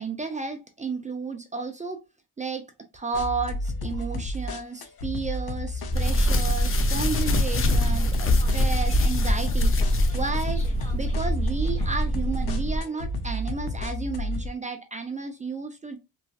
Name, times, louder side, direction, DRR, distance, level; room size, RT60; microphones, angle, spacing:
voice 1, 0.0-2.0 2.4-2.7 2.9-9.7 10.1-10.6 10.9-16.0, right 4 dB, 20° right, 0.4 m, -32 dB
sound 1, 3.1-14.5, left 1 dB, 75° left, 0.7 m, -32 dB
sound 2, 5.9-10.7, left 3 dB, 35° left, 0.5 m, -26 dB
sound 3, 5.9-12.8, right 1 dB, 20° left, 1.0 m, -26 dB
3.1 x 2.5 x 2.3 m
cardioid pair, 110°, 37 cm